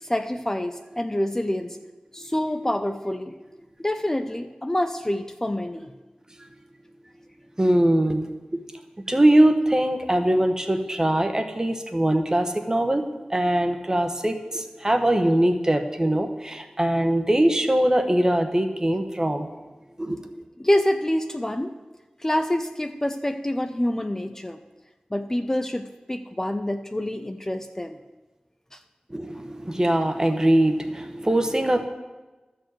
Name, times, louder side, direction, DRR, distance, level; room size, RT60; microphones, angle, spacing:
voice 1, 0.0-1.8 2.1-3.3 3.8-5.9 20.6-21.7 22.2-24.6 25.1-28.0 28.7-28.8, left 1 dB, 20° left, 7 dB, 0.5 m, -26 dB
voice 2, 7.6-8.3 9.1-13.0 13.3-19.5 20.0-20.3 29.1-31.9, right 1 dB, 25° right, 7 dB, 1.0 m, -22 dB
12.5 x 4.7 x 7.6 m, 1.2 s
wide cardioid pair, 60°, 3 cm